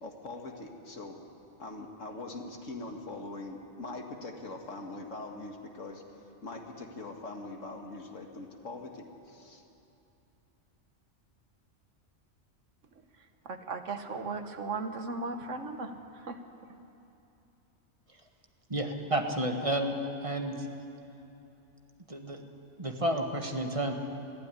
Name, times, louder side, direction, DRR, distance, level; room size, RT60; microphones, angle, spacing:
voice 1, 0.0-1.2 1.6-9.6, left 2 dB, 85° left, 3 dB, 2.2 m, -42 dB
voice 2, 13.1-16.8, right 3 dB, 80° right, 7 dB, 1.6 m, -37 dB
voice 3, 18.7-19.9 20.2-20.6 22.1-22.5 22.8-23.9, right 1 dB, 25° right, 4 dB, 1.6 m, -31 dB
21.0 x 15.0 x 9.9 m, 2.8 s
omnidirectional pair, 1.3 m